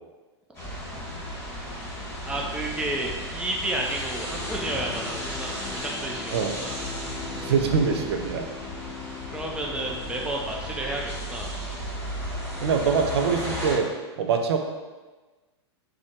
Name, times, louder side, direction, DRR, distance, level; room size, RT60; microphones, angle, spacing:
sound 1, 0.5-13.8, equal, 15° left, 1.5 m, -35 dB
voice 1, 2.2-6.8 9.3-11.5, right 1 dB, 5° right, -1 dB, 0.5 m, -31 dB
sound 2, 4.4-10.9, left 6 dB, 35° left, 0.9 m, -40 dB
voice 2, 7.3-8.5 12.6-13.9 14.2-14.6, right 6 dB, 65° right, 4 dB, 0.4 m, -24 dB
4.4 x 2.2 x 2.8 m, 1.2 s
hypercardioid pair, 100°, 14 cm